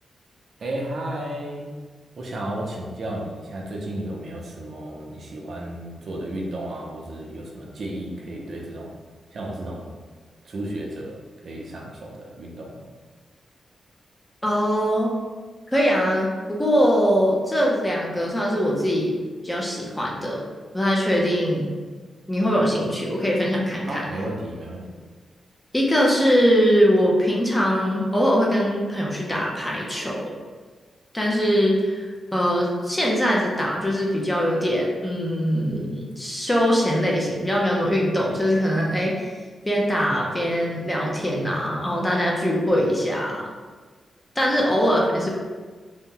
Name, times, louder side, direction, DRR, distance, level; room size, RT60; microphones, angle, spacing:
voice 1, 0.6-1.7 2.2-8.9 9.3-9.9 10.4-11.2 11.4-12.8 23.9-24.9, right 1 dB, 50° right, -2 dB, 0.5 m, -33 dB
voice 2, 14.4-15.1 15.7-19.2 19.4-20.4 20.7-21.7 22.3-24.0 25.7-30.3 31.1-43.5 44.4-45.3, equal, 10° left, -3 dB, 0.4 m, -22 dB
2.7 x 2.0 x 3.6 m, 1.4 s
wide cardioid pair, 175°, 0 cm